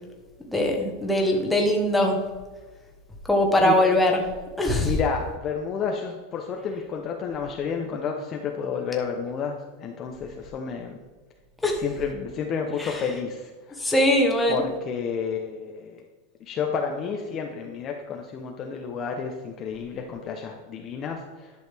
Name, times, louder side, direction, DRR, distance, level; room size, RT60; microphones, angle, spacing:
voice 1, 0.5-2.2 3.3-4.2 4.6-4.9 11.6-11.8 12.8-13.0 13.8-14.6, left 1 dB, 5° left, 1 dB, 1.1 m, -21 dB
voice 2, 4.8-11.0 11.8-13.8 14.5-16.0 16.4-21.5, left 6 dB, 25° left, 2 dB, 0.6 m, -31 dB
11.0 x 6.3 x 3.4 m, 1.3 s
supercardioid pair, 165°, 0 cm